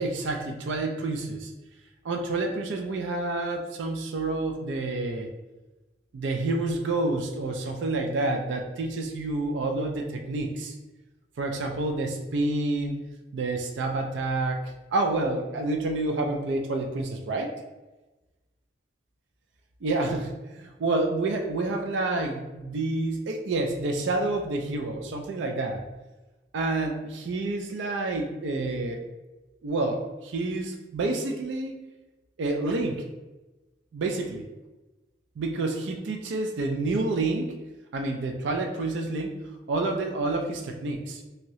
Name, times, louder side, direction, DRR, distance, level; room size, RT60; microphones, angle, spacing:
voice 1, 0.0-1.5 2.0-5.3 6.1-10.7 11.4-13.0 13.3-14.6 14.9-17.6 19.8-25.8 26.5-29.0 29.6-31.7 32.4-33.0 33.9-34.5 35.4-37.5 37.9-39.4 39.7-41.2, right 2 dB, 85° right, 3 dB, 0.4 m, -28 dB
2.8 x 2.6 x 3.0 m, 1.1 s
head